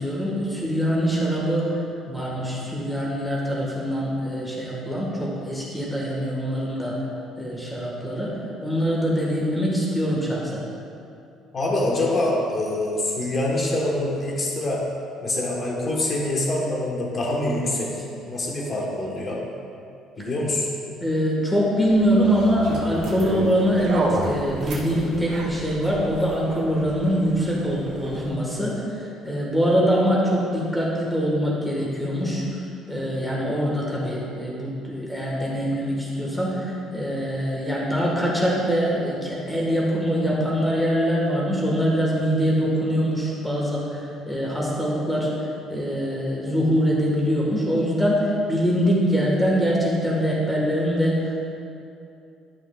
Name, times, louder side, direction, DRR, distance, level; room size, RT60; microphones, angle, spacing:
voice 1, 0.0-1.7 2.1-7.0 7.4-10.6 21.0-28.8 29.2-32.4 32.9-44.0 44.3-45.3 45.7-51.4, equal, 5° left, -4 dB, 1.4 m, -23 dB
voice 2, 11.5-14.8 15.2-17.9 18.3-19.4 20.2-20.7, left 1 dB, 30° left, -2 dB, 1.2 m, -25 dB
sound 1, 21.8-28.3, right 2 dB, 60° right, 1.4 m, -32 dB
11.0 x 5.9 x 2.3 m, 2.7 s
cardioid pair, 155°, 0 cm